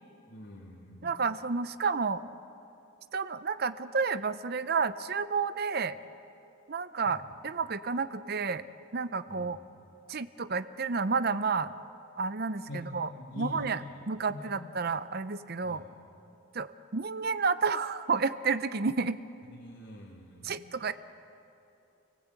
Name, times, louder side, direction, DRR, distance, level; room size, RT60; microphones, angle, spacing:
voice 1, 0.3-1.1 7.0-7.4 9.3-9.7 12.7-13.9 14.3-14.5 15.6-15.9 19.6-20.5, left 1 dB, 70° left, -4 dB, 2.9 m, -44 dB
voice 2, 1.0-2.3 3.1-6.0 6.7-8.6 8.9-9.6 10.1-11.7 12.2-13.1 13.4-13.8 14.1-15.8 16.5-19.2 20.4-20.9, right 5 dB, 45° right, 13 dB, 0.6 m, -30 dB
29.0 x 18.5 x 8.3 m, 2.8 s
head